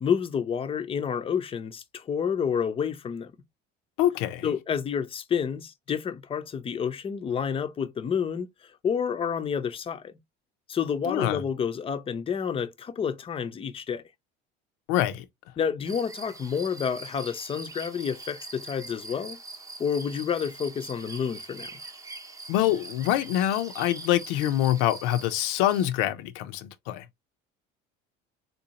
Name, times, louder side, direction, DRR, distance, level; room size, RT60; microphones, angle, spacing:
voice 1, 0.0-3.3 4.4-8.5 8.8-10.1 10.7-14.0 15.6-19.4 19.8-21.7, left 7 dB, 25° left, 0.5 m, -29 dB
voice 2, 4.0-4.5 11.1-11.4 14.9-15.2 22.5-27.0, left 13 dB, 85° left, 0.6 m, -25 dB
sound 1, 15.8-25.9, right 2 dB, 15° right, 0.7 m, -43 dB
3.9 x 2.6 x 2.8 m
cardioid pair, 125°, 21 cm